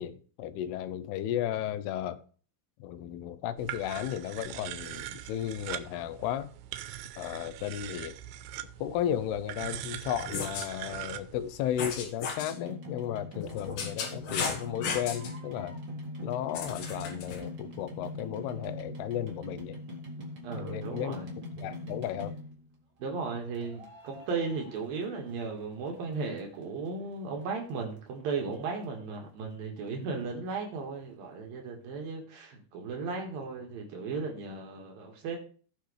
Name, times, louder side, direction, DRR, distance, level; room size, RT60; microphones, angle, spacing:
voice 1, 0.0-2.2 2.8-6.5 7.2-8.2 8.8-15.8 16.2-19.8 20.6-21.2 21.6-22.3, left 11 dB, 85° left, 2.7 m, -34 dB
sound 1, 3.6-12.1, right 13 dB, 90° right, 2.7 m, -42 dB
sound 2, 10.2-10.7 11.8-12.5 13.4-15.3 16.5-17.4, left 5 dB, 65° left, 2.9 m, -35 dB
sound 3, 12.4-22.7 23.5-25.6 25.9-26.9 27.4-27.5 27.7-27.8 28.0-28.1 28.5-28.6 28.8-28.9, left 2 dB, 35° right, 2.1 m, -42 dB
voice 2, 20.4-21.3 23.0-35.4, right 4 dB, 65° right, 3.3 m, -36 dB
17.0 x 5.9 x 3.3 m
omnidirectional pair, 4.6 m